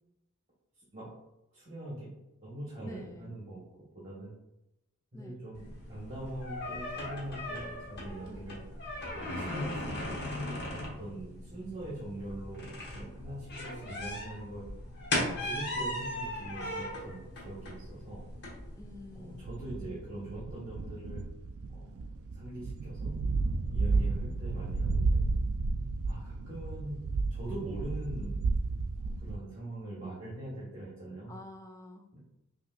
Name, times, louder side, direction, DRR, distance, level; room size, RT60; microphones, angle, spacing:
voice 1, 1.5-2.1 2.4-4.3 5.1-8.6 9.1-14.6 15.2-18.2 19.1-21.2 21.7-22.0 22.3-23.1 23.7-25.2 26.0-27.0 27.3-28.4 28.9-31.3 32.1-32.2, right 1 dB, 25° right, -7 dB, 1.3 m, -42 dB
voice 2, 2.8-3.3 5.1-5.4 8.2-8.5 18.7-19.4 23.9-24.1 31.3-32.1, left 2 dB, 15° left, 4 dB, 0.3 m, -48 dB
sound 1, 5.5-19.4, left 1 dB, 50° left, 1.0 m, -38 dB
sound 2, 19.5-29.4, right 3 dB, 65° right, 0.3 m, -32 dB
5.3 x 2.9 x 2.4 m, 0.90 s
head